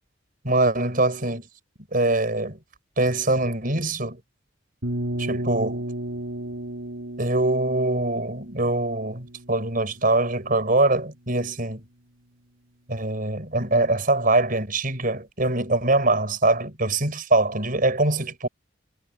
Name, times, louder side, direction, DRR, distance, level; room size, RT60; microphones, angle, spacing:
voice 1, 0.4-1.5 1.9-2.6 3.0-4.2 5.2-5.8 7.2-11.8 12.9-18.5, right 2 dB, 45° right, 5.3 m, -23 dB
sound 1, 4.8-10.6, right 1 dB, 90° right, 3.6 m, -34 dB
head